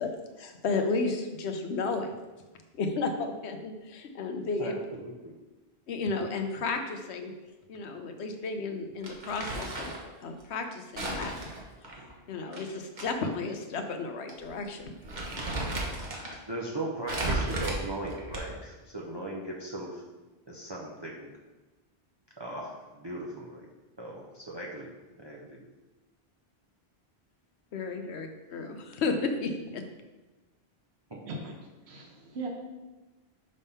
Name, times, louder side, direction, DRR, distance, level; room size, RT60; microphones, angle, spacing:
voice 1, 0.0-2.1 2.8-4.8 5.9-7.3 7.7-9.9 10.2-11.3 12.3-14.9 27.7-29.8, left 3 dB, 85° left, 6 dB, 1.0 m, -33 dB
voice 2, 5.0-5.3 16.1-20.0 20.5-21.3 22.4-23.7 24.0-24.9 25.2-25.6 31.1-31.2, right 1 dB, 30° right, -2 dB, 0.7 m, -38 dB
Crumpling crinkling, 9.0-10.1 11.0-13.0 13.4-13.5 14.3-14.5 14.8-16.4 17.1-18.7, right 2 dB, 45° right, 1.2 m, -34 dB
voice 3, 31.3-32.5, right 3 dB, 85° right, 0 dB, 1.2 m, -39 dB
6.3 x 3.6 x 5.5 m, 1.1 s
omnidirectional pair, 1.1 m